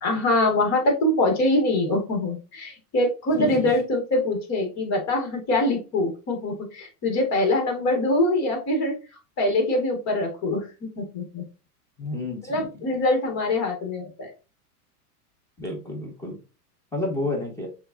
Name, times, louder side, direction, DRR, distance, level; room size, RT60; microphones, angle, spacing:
voice 1, 0.0-9.0 9.4-10.7 11.0-11.4 12.5-14.3, left 1 dB, 35° left, 3 dB, 1.7 m, -24 dB
voice 2, 3.4-3.7 12.0-12.6 15.6-16.4 16.9-17.7, left 2 dB, 5° left, -2 dB, 1.3 m, -30 dB
6.4 x 2.5 x 2.6 m, 0.32 s
hypercardioid pair, 115°, 46 cm